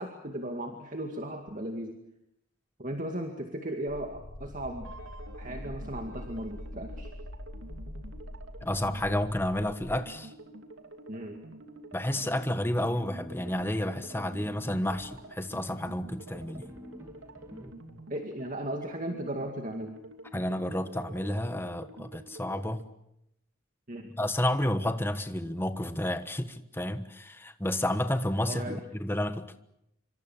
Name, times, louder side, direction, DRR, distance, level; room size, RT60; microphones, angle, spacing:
voice 1, 0.0-2.0 2.8-4.9 5.4-7.1 11.1-11.4 18.1-19.9 23.9-24.1 28.5-28.8, right 1 dB, 40° right, 2.2 m, -36 dB
sound 1, 3.9-10.0, left 1 dB, 65° left, 1.6 m, -43 dB
sound 2, 4.8-22.8, right 2 dB, 70° right, 2.9 m, -49 dB
voice 2, 8.6-10.3 11.9-16.7 20.3-22.8 24.2-29.6, left 1 dB, 10° left, 1.3 m, -31 dB
sound 3, 12.1-17.7, left 1 dB, 15° right, 2.6 m, -50 dB
26.5 x 25.0 x 7.3 m
head